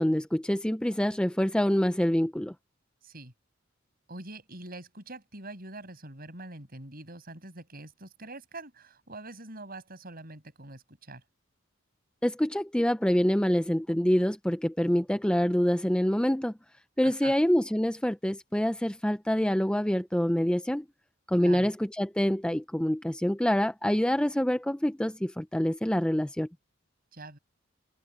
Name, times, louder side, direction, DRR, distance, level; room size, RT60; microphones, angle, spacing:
voice 1, 0.0-2.5 12.2-16.5 17.0-20.8 21.3-26.5, equal, 5° left, 0.5 m, -26 dB
voice 2, 3.0-3.3 4.1-11.2 17.0-17.4 21.4-21.7 27.1-27.4, right 2 dB, 50° right, 7.0 m, -44 dB
head